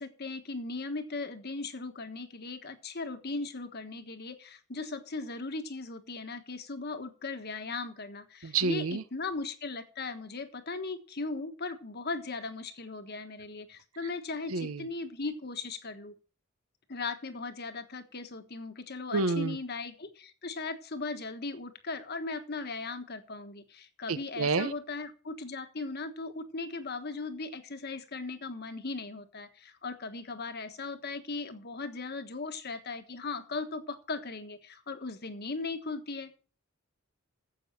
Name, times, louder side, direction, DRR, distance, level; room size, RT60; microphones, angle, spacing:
voice 1, 0.0-16.1 16.9-36.3, left 3 dB, 50° left, 8 dB, 1.4 m, -38 dB
voice 2, 8.4-9.0 14.5-14.9 19.1-19.6 24.1-24.7, right 4 dB, 85° right, 14 dB, 0.9 m, -29 dB
9.7 x 7.9 x 7.4 m, 0.40 s
head